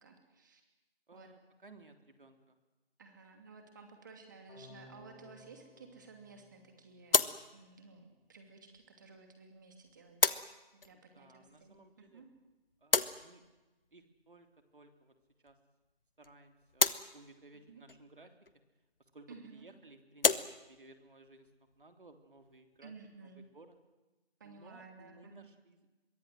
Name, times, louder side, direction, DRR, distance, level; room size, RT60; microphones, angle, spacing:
voice 1, 0.0-0.6 1.1-1.3 3.0-10.4 10.7-12.3 17.7-17.8 19.3-19.7 22.8-23.5 24.4-25.5, right 4 dB, 20° right, 5 dB, 2.7 m, -55 dB
voice 2, 1.1-2.6 10.9-12.2 12.8-13.4 13.9-14.5 14.7-15.1 15.4-15.6 16.2-18.4 19.1-20.3 20.7-21.5 21.8-22.9 23.2-23.8 24.4-25.9, right 2 dB, 55° right, 7 dB, 3.5 m, -58 dB
sound 1, 4.5-7.5, left 2 dB, 5° left, 2.3 m, -58 dB
sound 2, 6.7-23.9, left 4 dB, 60° left, 1.4 m, -37 dB
26.0 x 23.0 x 7.8 m, 1.1 s
figure-of-eight pair, 170°, 31 cm